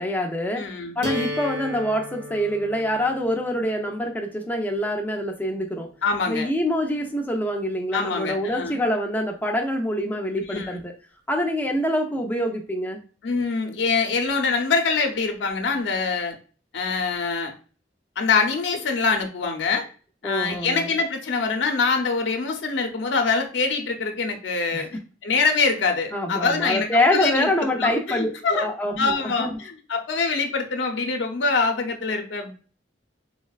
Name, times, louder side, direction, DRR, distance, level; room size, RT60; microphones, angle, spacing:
voice 1, 0.0-0.6 1.0-5.9 6.3-10.9 11.3-13.0 20.2-20.9 24.7-24.9 26.1-29.6, left 1 dB, 10° left, 2 dB, 0.4 m, -25 dB
voice 2, 0.6-1.0 6.0-6.5 7.9-8.8 10.5-10.8 13.2-16.4 16.7-17.5 18.2-19.9 20.2-24.9 25.2-28.7 29.0-32.5, left 4 dB, 85° left, 3 dB, 0.5 m, -24 dB
sound 1, 1.0-7.0, left 1 dB, 75° right, 0.7 m, -37 dB
4.0 x 2.1 x 2.3 m, 0.38 s
head